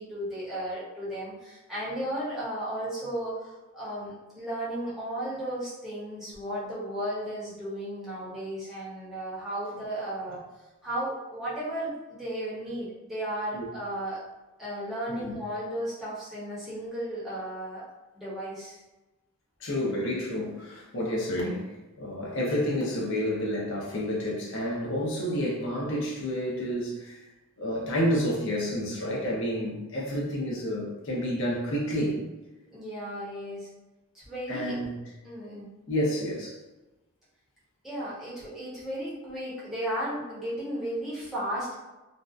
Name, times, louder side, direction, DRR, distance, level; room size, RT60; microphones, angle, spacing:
voice 1, 0.0-10.4 10.8-14.2 14.6-17.8 18.1-18.8 32.7-33.7 34.1-34.8 35.2-35.7 37.8-41.7, right 1 dB, ahead, -10 dB, 0.8 m, -34 dB
voice 2, 19.6-21.7 22.0-27.2 27.6-32.2 34.5-35.0 35.9-36.6, equal, 60° left, -4 dB, 0.6 m, -29 dB
2.5 x 2.2 x 2.3 m, 1.1 s
head